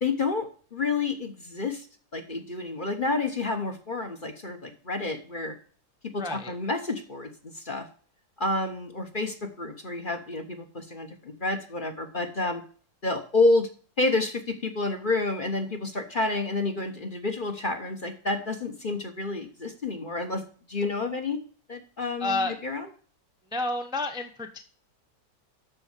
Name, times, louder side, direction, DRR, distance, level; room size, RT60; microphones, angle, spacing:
voice 1, 0.0-1.9 2.1-5.5 6.1-7.9 8.4-12.6 13.0-13.7 14.0-20.4 20.7-21.4 21.7-22.9, left 3 dB, 35° left, 5 dB, 1.2 m, -29 dB
voice 2, 6.2-6.5 22.2-22.5 23.5-24.6, left 2 dB, 5° right, 5 dB, 0.8 m, -30 dB
12.5 x 4.3 x 7.4 m, 0.43 s
omnidirectional pair, 1.8 m